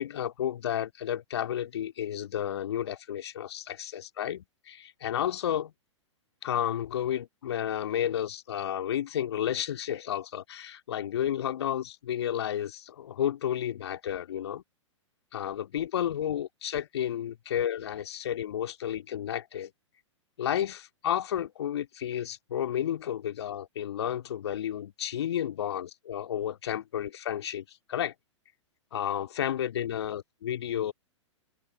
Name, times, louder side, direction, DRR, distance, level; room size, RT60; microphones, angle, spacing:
voice 1, 0.0-5.7 6.4-14.6 15.3-19.7 20.4-28.1 28.9-30.9, left 10 dB, 60° left, 2.2 m, -32 dB
open air
figure-of-eight pair, 110°, 16 cm